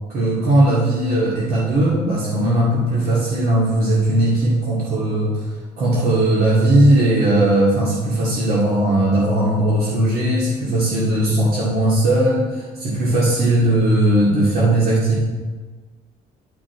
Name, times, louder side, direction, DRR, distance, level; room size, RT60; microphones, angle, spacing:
voice 1, 0.1-5.3 5.8-15.2, right 1 dB, 60° right, -7 dB, 2.1 m, -18 dB
10.0 x 5.2 x 4.7 m, 1.4 s
cardioid pair, 110°, 17 cm